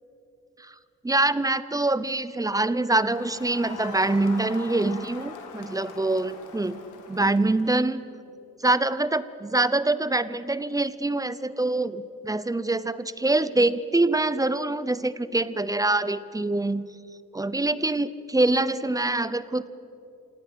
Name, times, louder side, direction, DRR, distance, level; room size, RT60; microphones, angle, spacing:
voice 1, 1.0-6.8 7.1-8.0 8.6-16.8 17.3-19.7, right 2 dB, 10° right, 16 dB, 0.7 m, -25 dB
Crowd, 3.1-7.9, left 4 dB, 85° left, 2.0 m, -42 dB
26.5 x 18.0 x 6.1 m, 2.8 s
cardioid pair, 90°, 30 cm